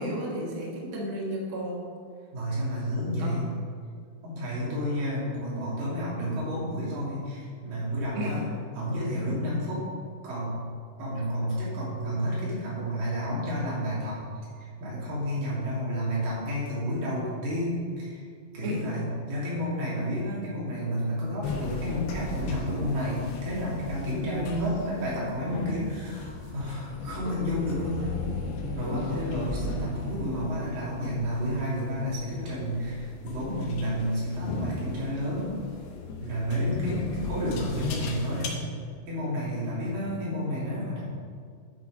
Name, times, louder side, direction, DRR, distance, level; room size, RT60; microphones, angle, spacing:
voice 1, 0.0-1.8 3.2-3.4 8.1-8.4 18.6-18.8 24.2-24.7, equal, 80° right, -3 dB, 1.1 m, -32 dB
voice 2, 2.3-3.4 4.2-8.5 8.7-9.9 10.2-10.5 11.0-14.2 14.6-18.2 18.5-28.1 28.8-35.6 36.2-38.7 39.1-41.0, equal, 55° right, -7 dB, 4.0 m, -31 dB
sound 1, 21.4-38.5, left 3 dB, 75° left, 3.2 m, -36 dB
10.5 x 5.8 x 5.1 m, 2.1 s
omnidirectional pair, 5.1 m